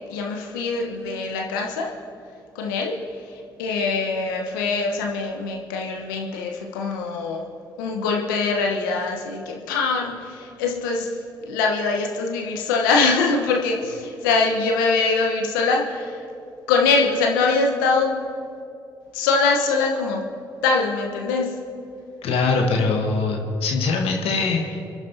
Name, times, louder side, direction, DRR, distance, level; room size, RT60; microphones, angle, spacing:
voice 1, 0.1-1.9 2.5-3.0 3.2-7.4 7.8-16.3 16.7-18.1 19.1-20.2 20.6-21.5, left 4 dB, 80° left, 1 dB, 1.3 m, -23 dB
voice 2, 22.2-24.8, left 4 dB, 65° left, 1 dB, 1.4 m, -22 dB
29.5 x 10.5 x 2.9 m, 2.6 s
hypercardioid pair, 45°, 11 cm